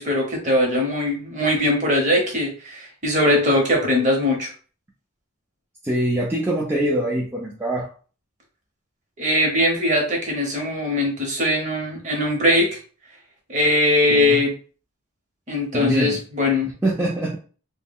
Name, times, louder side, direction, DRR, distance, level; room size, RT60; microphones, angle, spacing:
voice 1, 0.0-4.5 9.2-12.8 13.5-14.5 15.5-16.7, left 1 dB, 35° right, 1 dB, 0.8 m, -21 dB
voice 2, 5.8-7.9 14.1-14.4 15.7-16.2 16.8-17.4, right 1 dB, 10° right, -4 dB, 0.3 m, -23 dB
2.2 x 2.1 x 3.5 m, 0.39 s
head